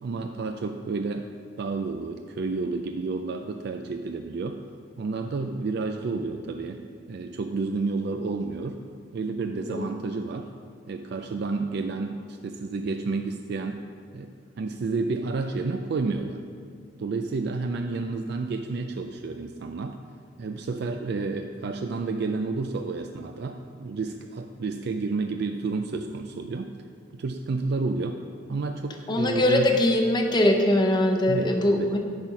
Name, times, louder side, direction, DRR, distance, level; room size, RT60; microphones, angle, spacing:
voice 1, 0.0-1.3 1.6-4.6 5.0-8.8 9.1-10.5 10.9-13.8 14.1-14.3 14.6-16.4 17.0-20.0 20.4-26.7 27.1-28.2 28.5-29.7 31.3-31.9, right 3 dB, 55° right, 6 dB, 0.4 m, -30 dB
voice 2, 29.1-32.0, left 1 dB, 25° left, 2 dB, 0.8 m, -22 dB
10.0 x 4.2 x 5.9 m, 2.2 s
head